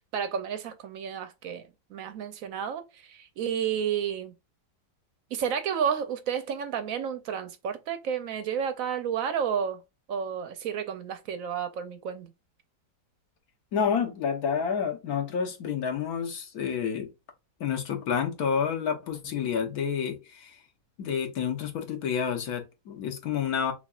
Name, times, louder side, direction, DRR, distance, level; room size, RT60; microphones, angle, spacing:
voice 1, 0.1-4.3 5.3-9.8 10.1-12.3, right 8 dB, 70° right, 0.8 m, -31 dB
voice 2, 13.7-17.1 17.6-20.6 21.0-23.7, left 7 dB, 60° left, 1.4 m, -29 dB
5.7 x 2.4 x 2.3 m
omnidirectional pair, 1.8 m